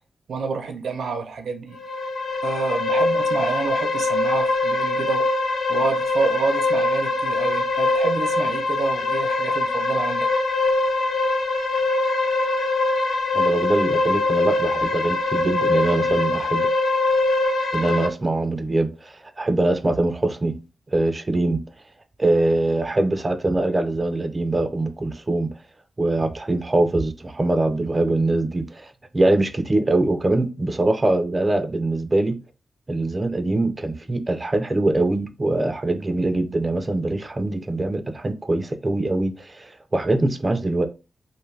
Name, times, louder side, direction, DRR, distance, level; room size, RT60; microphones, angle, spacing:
voice 1, 0.3-1.8 2.4-5.3 5.7-10.3, right 4 dB, 85° right, 0.5 m, -28 dB
sound 1, 1.7-18.1, left 2 dB, 75° left, 0.5 m, -22 dB
voice 2, 13.3-16.7 17.7-20.6 20.9-21.6 22.2-25.5 26.0-32.4 32.9-40.9, right 2 dB, 25° right, 0.3 m, -23 dB
2.5 x 2.3 x 3.1 m
wide cardioid pair, 135°, 0 cm